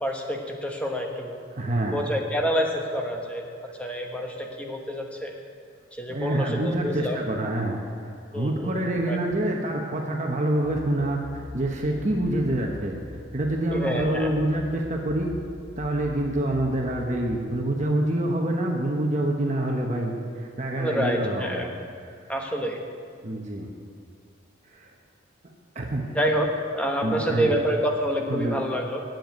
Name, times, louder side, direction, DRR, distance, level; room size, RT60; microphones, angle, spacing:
voice 1, 0.0-1.4 1.9-3.4 3.8-5.3 5.9-7.2 8.3-8.8 9.1-9.2 13.7-14.3 20.8-21.7 22.3-22.8 26.1-29.0, equal, 5° left, 1 dB, 1.2 m, -27 dB
voice 2, 1.5-2.0 6.1-12.9 13.3-15.3 15.8-21.7 23.2-23.7 24.7-24.9 25.7-26.2 27.0-27.6 28.3-28.6, right 1 dB, 40° right, 0 dB, 1.1 m, -26 dB
sound 1, 10.6-18.3, left 1 dB, 50° left, 0.8 m, -43 dB
9.1 x 7.8 x 9.3 m, 2.2 s
head